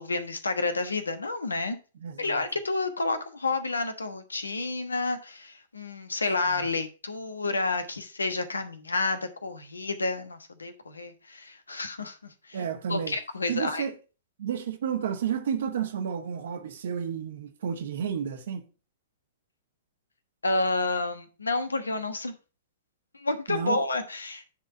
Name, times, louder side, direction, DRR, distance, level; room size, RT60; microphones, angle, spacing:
voice 1, 0.0-1.8 2.2-12.2 12.5-12.6 12.9-13.9 20.4-22.3 23.1-24.4, left 3 dB, 80° left, 1.2 m, -30 dB
voice 2, 2.0-2.4 6.6-6.7 12.5-13.2 13.5-13.9 14.4-18.7 23.5-23.8, right 8 dB, 60° right, 1.6 m, -31 dB
10.5 x 4.0 x 5.4 m
figure-of-eight pair, 105°, 0 cm